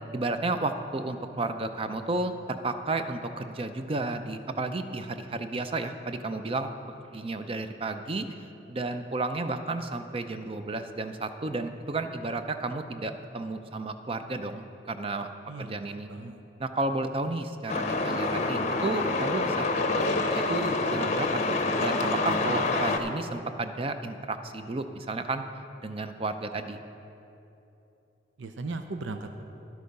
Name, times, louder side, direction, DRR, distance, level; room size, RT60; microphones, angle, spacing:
voice 1, 0.1-6.7 7.1-8.3 8.7-15.3 15.6-16.1 16.6-25.4 25.8-26.8, right 2 dB, 30° right, 8 dB, 0.5 m, -32 dB
voice 2, 15.5-16.4 28.4-29.4, right 3 dB, 90° right, 7 dB, 0.6 m, -38 dB
Truck, 17.7-23.0, left 3 dB, 40° left, 0.7 m, -27 dB
11.5 x 8.2 x 5.3 m, 2.9 s
head